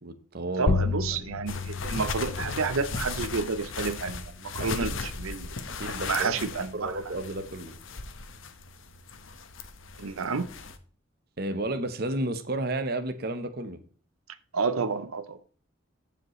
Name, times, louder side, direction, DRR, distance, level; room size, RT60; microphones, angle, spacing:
voice 1, 0.0-0.8 4.6-4.9 5.8-6.5 6.7-7.7 11.4-13.8, right 2 dB, 50° right, 0.9 m, -32 dB
voice 2, 0.6-5.5 6.1-6.9 10.0-10.5 14.5-15.4, right 4 dB, 90° right, 0.6 m, -30 dB
sound 1, 0.7-5.7, left 4 dB, 55° left, 0.6 m, -33 dB
sound 2, 1.5-10.8, left 4 dB, 70° left, 0.9 m, -37 dB
14.0 x 5.1 x 3.1 m
head